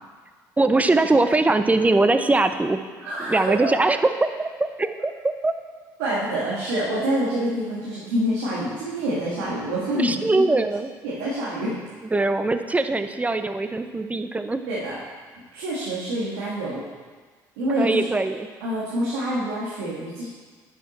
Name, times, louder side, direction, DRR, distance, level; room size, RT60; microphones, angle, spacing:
voice 1, 0.6-2.8 3.2-4.5 4.8-5.5 9.9-10.9 12.1-14.6 17.8-18.5, right 2 dB, 15° right, 9 dB, 0.6 m, -21 dB
voice 2, 3.0-3.7 6.0-10.5 11.0-11.8 14.7-15.0 15.5-16.8 17.6-18.1 18.6-20.3, right 1 dB, 90° right, -7 dB, 1.7 m, -26 dB
10.0 x 5.9 x 4.2 m, 1.5 s
supercardioid pair, 65°, 9 cm